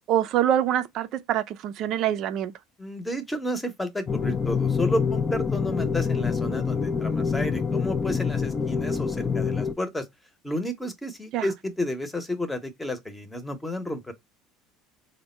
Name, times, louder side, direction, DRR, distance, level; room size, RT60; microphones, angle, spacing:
voice 1, 0.1-2.5 11.3-11.5, right 11 dB, 55° right, 0.4 m, -25 dB
voice 2, 2.8-10.1 10.4-14.1, left 1 dB, 10° left, 0.9 m, -31 dB
sound 1, 4.1-9.7, left 5 dB, 30° left, 0.4 m, -26 dB
3.4 x 2.1 x 4.2 m
supercardioid pair, 90°, 0 cm